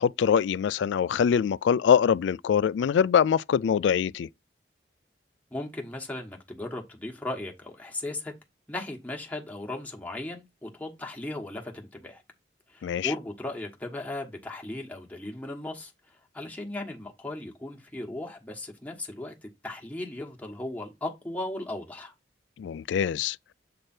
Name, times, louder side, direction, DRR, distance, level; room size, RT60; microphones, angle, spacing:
voice 1, 0.0-4.3 12.8-13.1 22.6-23.4, left 7 dB, 80° left, 0.3 m, -23 dB
voice 2, 5.5-8.3 8.7-12.2 12.7-15.9 16.3-22.1, left 2 dB, 10° left, 1.3 m, -37 dB
7.6 x 3.3 x 4.3 m
head